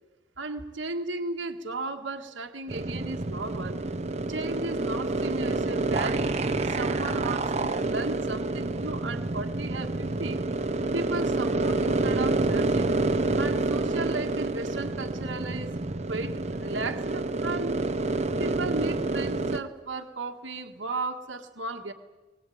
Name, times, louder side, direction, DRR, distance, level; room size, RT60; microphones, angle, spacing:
voice 1, 0.4-3.8 4.3-10.4 10.9-13.0 13.4-15.7 16.1-17.9 18.4-21.9, right 3 dB, 75° right, 4 dB, 1.8 m, -35 dB
sound 1, 2.7-19.6, right 2 dB, 35° right, 1.1 m, -28 dB
21.0 x 19.0 x 9.4 m, 1.2 s
head